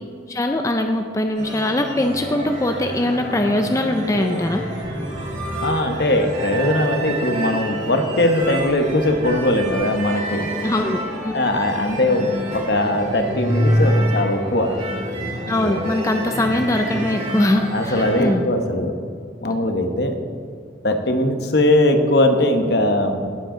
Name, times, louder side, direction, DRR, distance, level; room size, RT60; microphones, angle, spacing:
voice 1, 0.3-4.6 10.6-11.3 15.5-18.4, left 1 dB, 20° left, 5 dB, 0.5 m, -22 dB
sound 1, 1.4-18.3, equal, 40° right, 3.2 m, -27 dB
voice 2, 5.6-10.6 11.3-14.7 15.6-15.7 17.7-18.9 19.4-20.2 20.8-23.3, left 1 dB, 60° left, 6 dB, 1.1 m, -20 dB
18.0 x 7.7 x 3.8 m, 2.2 s
head